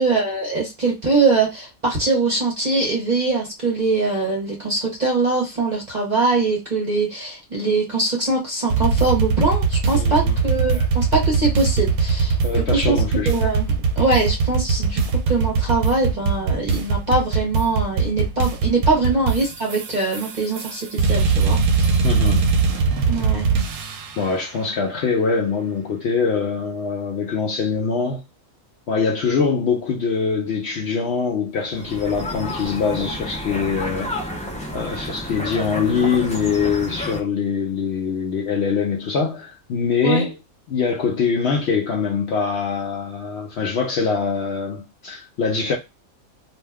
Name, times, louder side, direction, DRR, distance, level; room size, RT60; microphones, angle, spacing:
voice 1, 0.0-12.4 12.7-13.0 13.2-15.0 15.3-21.9 23.1-23.5 40.0-40.3, right 3 dB, 40° right, 0.8 m, -22 dB
sound 1, 8.7-24.3, right 5 dB, 70° right, 0.9 m, -21 dB
voice 2, 9.9-10.4 10.7-10.9 12.4-13.3 22.0-22.5 24.2-28.2 28.9-34.2 34.7-40.4 40.7-45.8, left 5 dB, 65° left, 0.7 m, -23 dB
sound 2, 31.7-37.2, left 1 dB, 10° left, 0.4 m, -30 dB
2.6 x 2.2 x 3.3 m
omnidirectional pair, 1.5 m